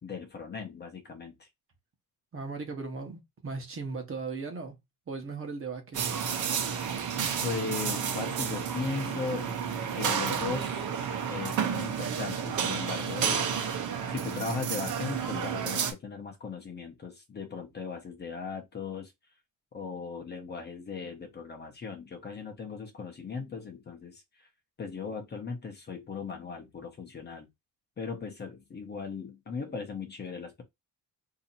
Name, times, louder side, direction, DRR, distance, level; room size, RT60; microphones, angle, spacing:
voice 1, 0.0-1.5 7.4-9.5 10.0-13.8 14.1-19.1 19.7-24.5 24.8-27.5 28.0-30.6, left 5 dB, 30° left, 0.8 m, -38 dB
voice 2, 2.3-4.8 5.1-6.1, right 4 dB, 40° right, 1.1 m, -37 dB
sound 1, 5.9-15.9, right 7 dB, 60° right, 0.9 m, -31 dB
2.9 x 2.8 x 4.0 m
cardioid pair, 150°, 34 cm